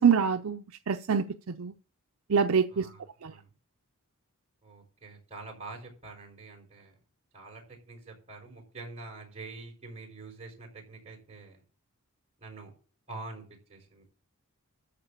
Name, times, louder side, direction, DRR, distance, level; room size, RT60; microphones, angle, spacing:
voice 1, 0.0-1.7 2.3-2.9 3.2-3.3, right 6 dB, 65° right, 0.6 m, -25 dB
voice 2, 2.7-3.5 4.6-7.0 7.3-11.6 12.4-12.7 13.1-13.4 13.7-14.0, right 3 dB, 30° right, 4.9 m, -46 dB
13.5 x 4.9 x 7.0 m
head